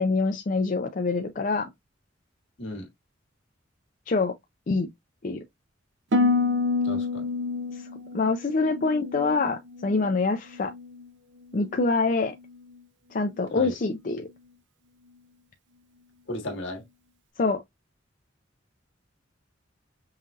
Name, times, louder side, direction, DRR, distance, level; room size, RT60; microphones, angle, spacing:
voice 1, 0.0-1.7 4.1-4.3 4.7-4.9 5.2-5.4 7.7-7.8 8.1-10.7 11.5-12.3 13.1-14.3 17.4-17.6, left 3 dB, 45° left, 0.5 m, -25 dB
Harp, 6.1-10.2 10.5-11.1 11.6-11.9, left 3 dB, 65° right, 0.6 m, -28 dB
voice 2, 6.8-7.2 13.5-13.7 16.3-16.8, left 1 dB, 70° left, 1.6 m, -35 dB
5.6 x 2.6 x 2.4 m
head